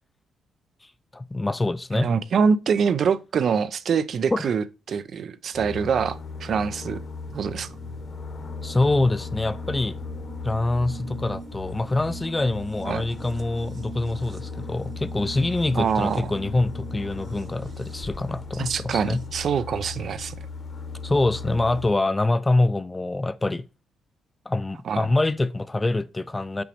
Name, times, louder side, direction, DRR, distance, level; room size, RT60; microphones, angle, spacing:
voice 1, 1.1-2.1 4.3-4.5 8.6-10.0 10.4-19.2 21.0-23.6 24.5-26.6, left 2 dB, 15° left, 0.4 m, -25 dB
voice 2, 1.9-7.0 7.3-7.7 12.9-13.1 15.8-16.3 18.6-20.4 24.9-25.0, right 6 dB, 55° right, 0.5 m, -25 dB
sound 1, 5.5-21.9, left 4 dB, 40° left, 0.9 m, -37 dB
sound 2, 7.3-19.3, right 4 dB, 40° right, 0.8 m, -44 dB
6.9 x 5.0 x 3.0 m
cardioid pair, 90°, 0 cm